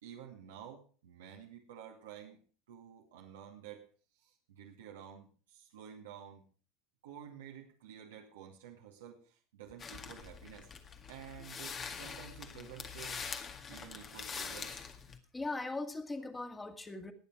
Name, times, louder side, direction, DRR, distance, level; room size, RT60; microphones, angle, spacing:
voice 1, 0.0-2.4 2.7-3.8 4.1-6.4 7.0-10.7 11.1-13.2 13.7-14.8, right 9 dB, 85° right, -1 dB, 2.1 m, -51 dB
sound 1, 9.8-15.2, left 6 dB, 35° left, 1.9 m, -44 dB
voice 2, 15.3-17.1, left 2 dB, 15° left, 7 dB, 2.2 m, -39 dB
20.0 x 7.1 x 4.8 m, 0.41 s
hypercardioid pair, 100°, 0 cm